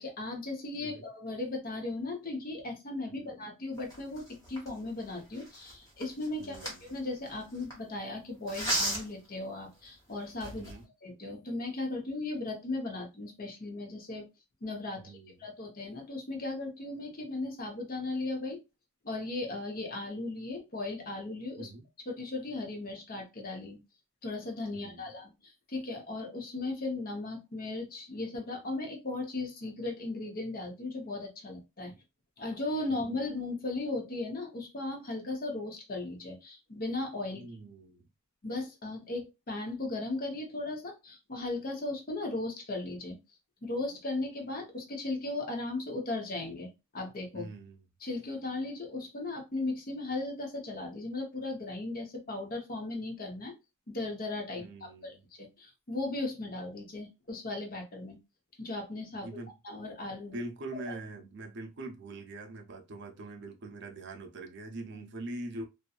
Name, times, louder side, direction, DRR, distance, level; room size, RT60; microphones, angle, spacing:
voice 1, 0.0-10.7 11.0-14.3 14.6-15.1 15.4-18.6 19.0-21.7 22.1-23.8 24.2-31.9 32.4-37.4 38.4-43.2 43.6-47.5 48.0-53.5 53.9-58.2 58.6-59.3 59.6-60.4 60.8-60.9, left 2 dB, 45° left, 0.8 m, -37 dB
sound 1, 3.8-7.7 8.5-9.3 9.8-9.9 10.3-10.8, equal, 15° left, 1.0 m, -36 dB
voice 2, 6.4-6.8 10.5-10.9 15.0-15.4 21.6-21.9 24.7-25.0 32.9-33.1 37.3-38.1 47.3-47.8 54.6-55.2 59.2-59.5 60.3-65.7, right 2 dB, 55° right, 0.5 m, -43 dB
2.7 x 2.3 x 2.3 m
head